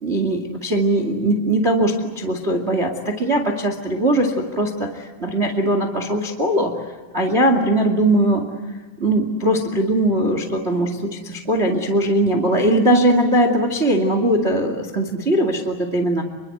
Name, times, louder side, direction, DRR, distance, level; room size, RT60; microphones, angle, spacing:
voice 1, 0.0-6.7 7.1-8.4 9.0-16.2, right 1 dB, 80° right, 5 dB, 0.5 m, -20 dB
29.0 x 23.5 x 7.9 m, 1.3 s
omnidirectional pair, 5.6 m